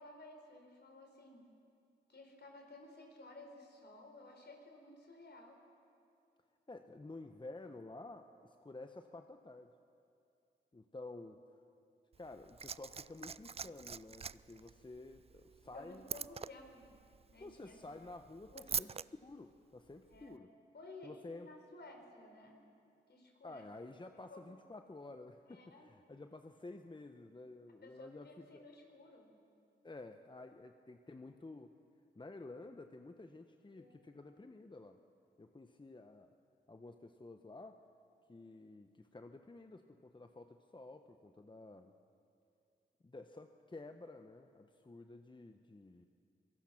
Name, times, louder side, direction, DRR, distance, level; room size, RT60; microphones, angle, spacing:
voice 1, 0.0-1.5 2.1-5.6 15.7-16.9 17.3-18.0 18.5-18.9 20.1-20.4 20.7-22.5 23.1-23.6 24.3-24.4 25.5-25.9 27.8-29.3 33.7-34.2, left 2 dB, 60° left, 3 dB, 4.2 m, -55 dB
voice 2, 6.7-9.7 10.7-11.4 12.2-16.3 17.4-18.9 19.2-20.5 21.0-21.5 23.4-28.6 29.8-31.7 32.1-35.0 35.4-36.3 36.7-37.8 38.3-41.9 43.0-46.0, left 2 dB, 25° left, 7 dB, 1.0 m, -51 dB
Liquid, 12.1-19.1 20.1-20.2, right 6 dB, 30° right, 0.4 m, -45 dB
24.5 x 18.0 x 6.0 m, 2.5 s
supercardioid pair, 40°, 20 cm